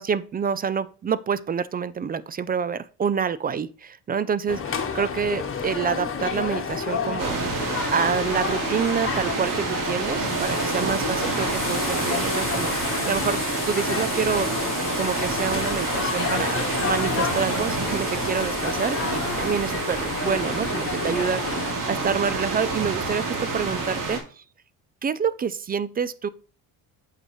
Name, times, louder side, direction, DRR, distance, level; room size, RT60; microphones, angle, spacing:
voice 1, 0.0-24.4 25.0-26.3, right 6 dB, 25° right, 0.4 m, -27 dB
sound 1, 4.5-21.7, left 6 dB, 30° left, 1.3 m, -30 dB
sound 2, 7.2-24.2, right 3 dB, 55° right, 2.2 m, -28 dB
8.0 x 5.7 x 3.1 m
cardioid pair, 85°, 40 cm